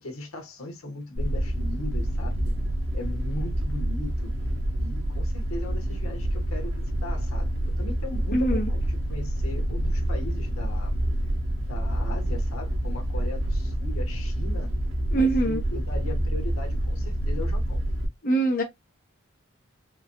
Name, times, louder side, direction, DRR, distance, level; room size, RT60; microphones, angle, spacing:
voice 1, 0.0-2.5 2.9-4.3 4.8-11.0 11.6-14.7 15.1-17.8, left 2 dB, 90° left, 1.4 m, -38 dB
sound 1, 1.2-18.1, right 1 dB, 60° right, 1.6 m, -27 dB
voice 2, 8.3-8.7 15.1-15.6 18.2-18.6, right 2 dB, 40° left, 0.9 m, -23 dB
4.6 x 2.3 x 2.6 m
head